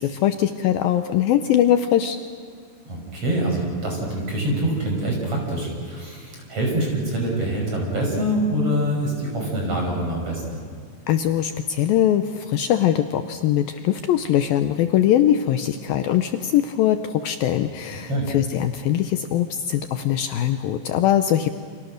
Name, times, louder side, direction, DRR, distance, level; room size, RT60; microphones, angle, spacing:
voice 1, 0.0-2.2 11.1-21.5, left 11 dB, 80° left, 8 dB, 2.2 m, -21 dB
voice 2, 2.8-10.6 17.9-18.3, right 1 dB, 35° right, -1 dB, 6.7 m, -25 dB
30.0 x 27.0 x 6.5 m, 2.2 s
omnidirectional pair, 5.0 m